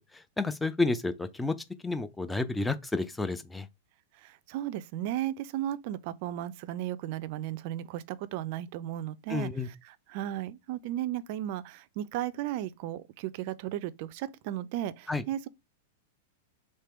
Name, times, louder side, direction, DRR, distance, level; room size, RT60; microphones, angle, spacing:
voice 1, 0.1-1.6 1.8-3.7 9.3-9.7 15.1-15.2, left 3 dB, 10° left, 0.5 m, -30 dB
voice 2, 4.2-9.5 10.1-15.5, right 12 dB, 55° right, 0.4 m, -35 dB
3.3 x 3.1 x 4.4 m
hypercardioid pair, 105°, 0 cm